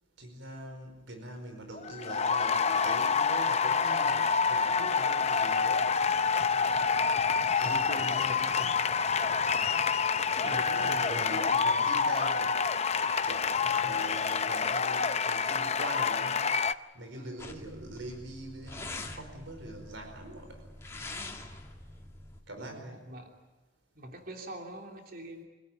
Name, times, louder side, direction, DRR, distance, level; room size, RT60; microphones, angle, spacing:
voice 1, 0.2-5.9 7.0-7.2 8.2-8.4 10.4-12.6 13.2-16.4 16.9-20.7 22.5-23.0, right 1 dB, 80° right, 6 dB, 4.7 m, -43 dB
sound 1, 1.7-16.7, left 5 dB, 35° left, 0.6 m, -27 dB
voice 2, 7.6-8.7 10.3-11.8 13.6-14.0 17.1-17.4 22.6-23.3 23.9-25.4, equal, 50° right, 2 dB, 3.1 m, -43 dB
sound 2, 17.4-22.4, left 2 dB, 15° left, 2.4 m, -44 dB
26.0 x 17.0 x 9.4 m, 1.2 s
head